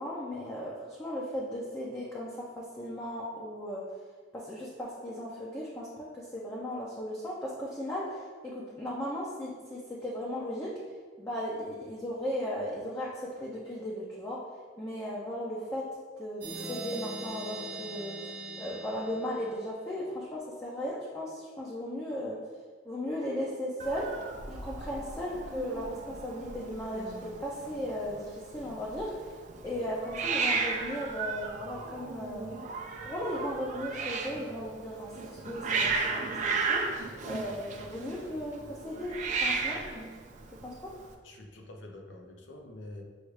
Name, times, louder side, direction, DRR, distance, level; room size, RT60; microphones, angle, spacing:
voice 1, 0.0-3.8 4.3-10.7 11.2-14.4 14.8-15.8 16.2-18.2 18.6-22.4 22.8-24.1 24.5-29.3 29.6-32.5 33.0-35.9 36.4-36.8 37.2-40.0 40.6-40.9, equal, 15° left, -6 dB, 0.5 m, -36 dB
sound 1, 16.4-20.0, right 2 dB, 65° right, 0.8 m, -41 dB
Hiss, 23.8-41.1, right 4 dB, 40° right, 0.4 m, -35 dB
voice 2, 41.2-43.0, left 1 dB, 80° left, 2 dB, 0.6 m, -46 dB
6.3 x 2.3 x 3.2 m, 1.5 s
head